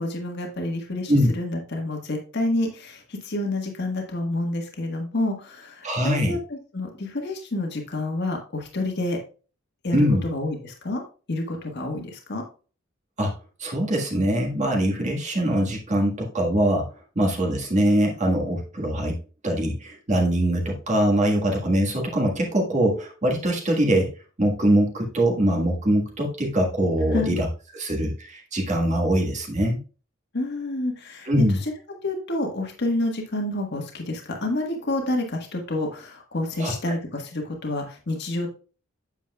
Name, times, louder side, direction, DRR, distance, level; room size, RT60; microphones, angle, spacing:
voice 1, 0.0-9.2 9.8-11.0 11.3-12.4 27.1-27.4 30.3-31.5 32.0-38.5, left 2 dB, 55° left, 2 dB, 1.5 m, -28 dB
voice 2, 5.8-6.4 9.9-10.2 13.2-13.3 13.6-16.9 17.1-24.1 24.4-27.5 27.7-29.8 31.2-31.6 36.6-36.7, right 1 dB, 35° right, 0 dB, 1.6 m, -23 dB
8.5 x 7.5 x 2.3 m, 0.35 s
head